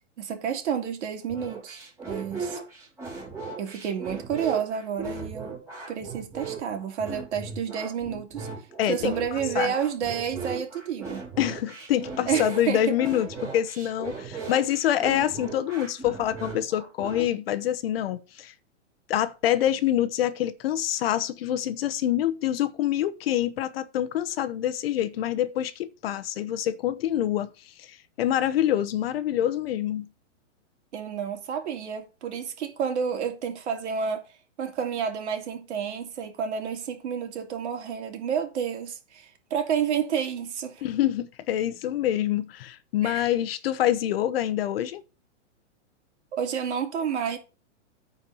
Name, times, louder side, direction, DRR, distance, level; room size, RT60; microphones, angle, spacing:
voice 1, 0.2-1.8 2.1-2.6 3.6-5.6 5.9-8.5 8.9-11.2 12.3-12.9 30.9-34.2 34.6-40.8 43.0-43.3 46.3-47.4, right 7 dB, 65° right, 3.0 m, -30 dB
sound 1, 1.3-17.3, right 4 dB, 5° right, 4.5 m, -37 dB
voice 2, 8.8-9.1 9.5-9.7 11.4-18.5 19.1-30.1 40.8-45.0, left 12 dB, 50° left, 0.9 m, -26 dB
9.2 x 4.6 x 7.0 m
hypercardioid pair, 155°, 37 cm